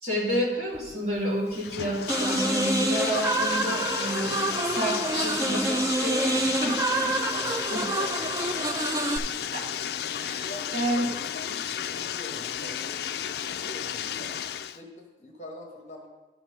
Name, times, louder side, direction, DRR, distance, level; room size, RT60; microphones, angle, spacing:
voice 1, 0.0-7.1 7.4-7.8 9.3-9.7 10.1-11.1, equal, 35° right, -6 dB, 2.7 m, -30 dB
Bathtub (filling or washing), 0.7-14.8, left 9 dB, 65° left, 0.3 m, -33 dB
sound 1, 2.1-9.2, right 2 dB, 20° right, 0.3 m, -27 dB
voice 2, 6.7-9.2 10.3-14.3 14.7-16.1, left 1 dB, 40° left, 0 dB, 1.2 m, -45 dB
12.0 x 4.3 x 5.4 m, 1.2 s
head